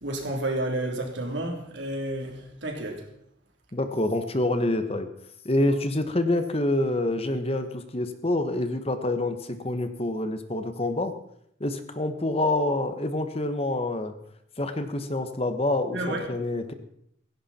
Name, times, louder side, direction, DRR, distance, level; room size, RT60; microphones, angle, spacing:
voice 1, 0.0-3.0 5.6-5.7 15.9-16.3, right 1 dB, 65° right, 3.5 m, -31 dB
voice 2, 3.7-5.1 5.4-11.1 11.6-14.1 14.6-16.7, left 1 dB, 30° left, 1.2 m, -27 dB
16.5 x 16.5 x 4.4 m
head